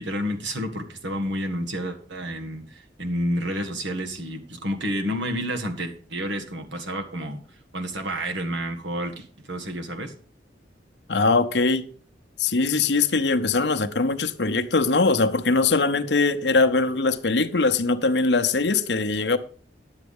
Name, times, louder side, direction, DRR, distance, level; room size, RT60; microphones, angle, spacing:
voice 1, 0.0-7.4 7.7-10.1, equal, 85° right, 1.7 m, -30 dB
voice 2, 11.1-11.8 12.4-19.4, left 3 dB, 65° left, 0.8 m, -21 dB
10.5 x 8.2 x 5.4 m
head